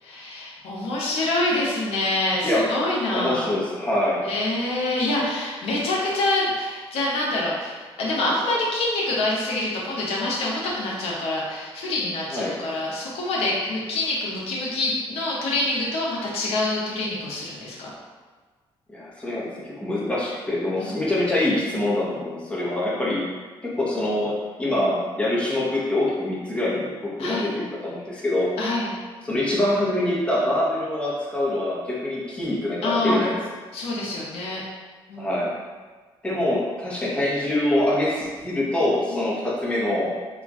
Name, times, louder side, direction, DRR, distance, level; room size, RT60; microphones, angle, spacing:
voice 1, 0.0-3.5 4.2-17.9 20.8-21.0 27.2-27.5 28.6-29.0 32.8-33.3 33.7-34.6 35.1-35.4 39.1-39.2, left 2 dB, 85° left, -4 dB, 0.8 m, -26 dB
voice 2, 3.1-4.2 12.3-12.5 18.9-23.3 23.6-28.5 29.2-33.4 35.2-35.5 36.2-40.1, left 1 dB, 10° left, -6 dB, 0.9 m, -24 dB
3.0 x 2.5 x 3.5 m, 1.4 s
cardioid pair, 110°, 10 cm